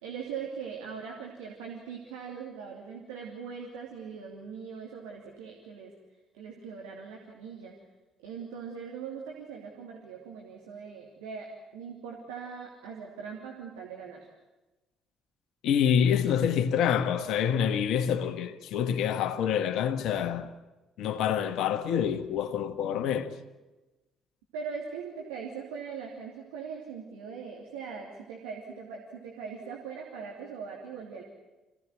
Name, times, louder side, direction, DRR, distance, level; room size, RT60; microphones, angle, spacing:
voice 1, 0.0-5.9 6.3-7.7 8.2-14.3 24.5-31.2, right 6 dB, 70° right, 2.9 m, -41 dB
voice 2, 15.6-20.5 21.0-23.3, left 8 dB, 60° left, 1.4 m, -27 dB
26.0 x 17.0 x 9.7 m
figure-of-eight pair, 45°, 0 cm